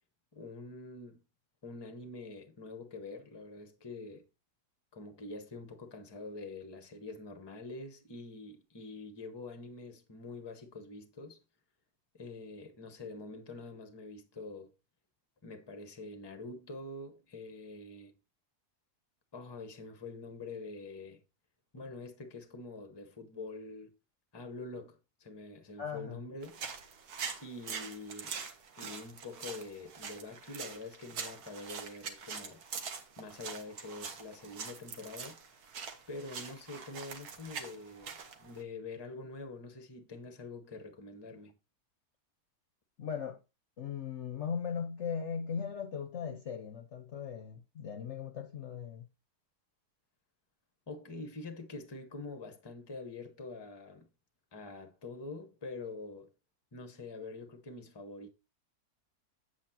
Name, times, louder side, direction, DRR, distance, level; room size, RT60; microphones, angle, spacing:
voice 1, 0.3-1.2 1.6-4.3 4.9-11.4 12.1-14.7 15.4-18.1 19.3-21.2 21.7-23.9 24.3-26.6 27.4-28.4 28.8-32.6 33.2-35.6 36.1-41.5 50.9-54.1 54.5-56.3 56.7-58.3, left 3 dB, 20° left, 0.9 m, -45 dB
voice 2, 25.8-26.2 43.0-43.4 43.8-49.1, left 7 dB, 55° left, 1.0 m, -38 dB
sound 1, 26.4-38.6, right 6 dB, 75° right, 1.6 m, -44 dB
8.1 x 8.0 x 2.8 m
omnidirectional pair, 1.7 m